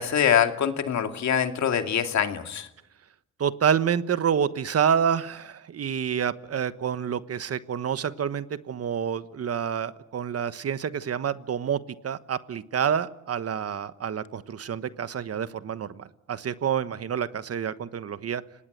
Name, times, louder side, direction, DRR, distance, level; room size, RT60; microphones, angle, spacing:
voice 1, 0.0-2.7, left 8 dB, 65° left, 6 dB, 2.5 m, -24 dB
voice 2, 3.4-18.4, right 8 dB, 50° right, 13 dB, 1.3 m, -28 dB
30.0 x 19.0 x 8.0 m, 0.81 s
cardioid pair, 90°, 31 cm